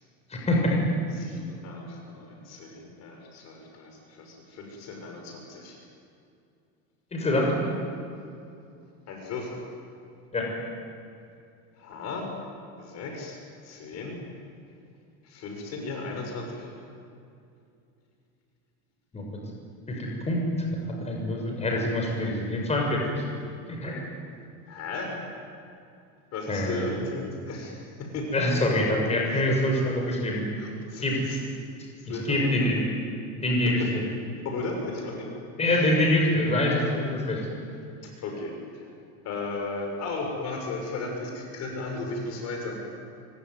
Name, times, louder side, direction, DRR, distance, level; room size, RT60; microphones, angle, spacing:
voice 1, 0.3-0.8 7.1-7.5 10.3-10.5 19.1-19.3 19.9-20.4 21.0-23.2 23.7-24.1 26.5-26.9 28.3-30.4 31.0-31.2 32.3-32.8 33.4-33.8 35.6-37.4, left 1 dB, 15° left, 0 dB, 6.4 m, -25 dB
voice 2, 1.1-5.8 9.1-9.6 11.8-12.3 12.8-13.4 13.6-14.2 15.2-16.7 24.7-25.2 26.3-28.3 28.6-28.8 29.3-30.2 30.6-31.4 31.9-32.7 33.6-33.9 34.4-35.3 35.6-35.9 38.0-38.9 39.2-42.8, left 3 dB, 45° left, 2 dB, 6.4 m, -36 dB
26.0 x 23.5 x 9.5 m, 2.5 s
supercardioid pair, 140°, 38 cm